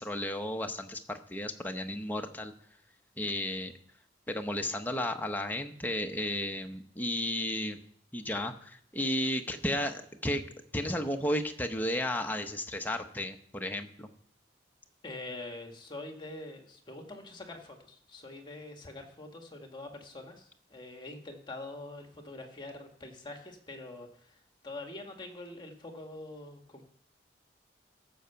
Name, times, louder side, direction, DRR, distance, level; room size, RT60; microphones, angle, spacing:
voice 1, 0.0-2.5 3.2-3.7 4.3-7.8 8.1-14.1, left 1 dB, 10° left, 5 dB, 0.8 m, -33 dB
voice 2, 15.0-26.9, left 2 dB, 25° left, 4 dB, 1.5 m, -45 dB
14.0 x 5.6 x 6.9 m, 0.64 s
head